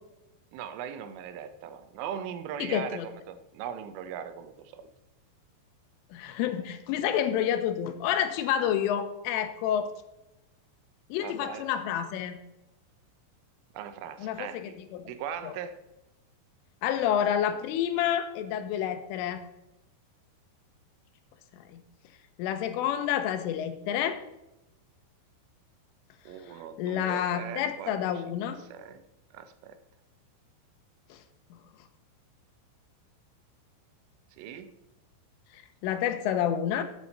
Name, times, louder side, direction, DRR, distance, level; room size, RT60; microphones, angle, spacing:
voice 1, 0.5-4.9 11.2-11.7 13.7-14.7 15.0-15.8 26.3-28.2 28.7-29.0 29.3-29.8 34.4-34.7, right 8 dB, 85° right, 10 dB, 3.4 m, -39 dB
voice 2, 2.6-3.1 6.1-9.9 11.1-12.4 14.2-15.1 15.4-15.5 16.8-19.4 21.5-21.8 22.4-24.2 26.8-28.6 31.1-31.2 31.5-31.6 35.5-36.8, left 9 dB, 90° left, 9 dB, 3.5 m, -29 dB
14.0 x 8.9 x 4.2 m, 0.93 s
omnidirectional pair, 5.6 m